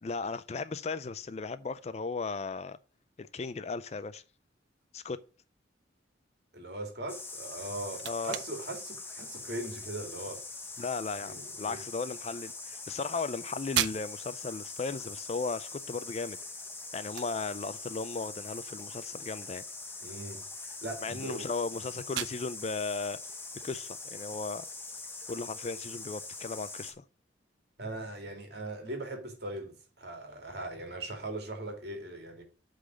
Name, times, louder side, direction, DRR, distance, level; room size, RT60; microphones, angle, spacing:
voice 1, 0.0-2.8 3.2-4.2 4.9-5.2 8.0-8.4 10.8-16.4 16.9-19.6 21.0-23.2 23.5-24.7 25.3-27.0, left 4 dB, 35° left, 0.4 m, -36 dB
voice 2, 6.5-10.4 11.1-11.8 20.0-21.5 27.8-32.4, right 1 dB, 60° right, 2.4 m, -40 dB
sound 1, 7.1-26.9, left 3 dB, 10° left, 1.0 m, -43 dB
sound 2, 22.2-25.1, right 12 dB, 75° right, 0.5 m, -42 dB
8.3 x 3.9 x 6.2 m
head